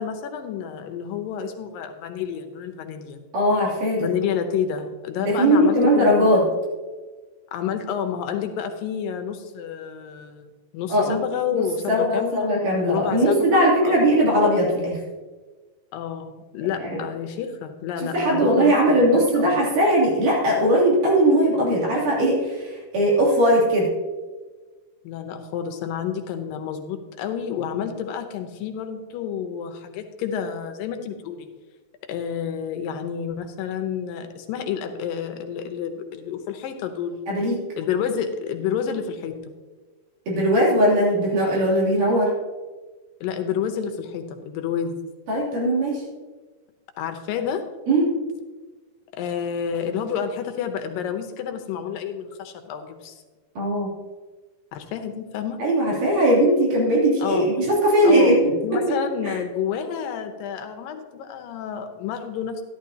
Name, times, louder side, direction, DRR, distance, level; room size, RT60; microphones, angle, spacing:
voice 1, 0.0-3.2 4.0-6.5 7.5-14.1 15.9-19.7 25.0-31.5 32.0-37.3 37.8-39.3 43.2-45.0 47.0-47.6 49.1-53.2 54.7-55.6 57.2-57.7 58.0-62.6, left 8 dB, 90° left, 6 dB, 2.6 m, -29 dB
voice 2, 3.3-4.1 5.2-6.4 10.9-11.2 11.5-15.0 16.8-16.9 18.0-23.9 37.3-37.6 40.3-42.3 45.3-46.0 47.9-48.1 53.6-53.9 55.6-58.4 59.2-59.4, equal, 65° right, -4 dB, 4.5 m, -19 dB
13.0 x 11.5 x 2.8 m, 1.3 s
omnidirectional pair, 3.9 m